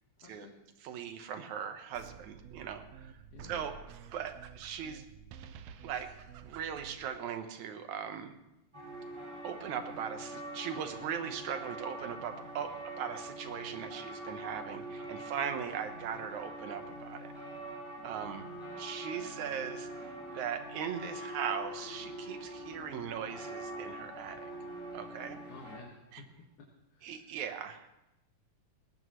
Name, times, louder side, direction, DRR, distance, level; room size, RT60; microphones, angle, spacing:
voice 1, 0.2-0.5 3.3-3.6 25.5-26.0 26.9-27.3, left 4 dB, 65° left, -2 dB, 3.1 m, -52 dB
voice 2, 0.8-3.1 3.5-3.8 4.1-5.0 5.8-6.1 6.4-8.3 9.4-17.3 18.0-18.4 18.8-19.9 20.3-24.5 24.9-25.4 26.1-26.2 27.0-27.9, right 8 dB, 65° right, 7 dB, 2.3 m, -39 dB
sound 1, 1.9-7.1, right 7 dB, 85° right, 1.5 m, -50 dB
sound 2, 8.7-25.8, right 1 dB, 10° right, 1.6 m, -44 dB
sound 3, 18.2-25.5, left 4 dB, 85° left, 4.3 m, -53 dB
20.0 x 18.0 x 3.2 m, 0.92 s
omnidirectional pair, 3.9 m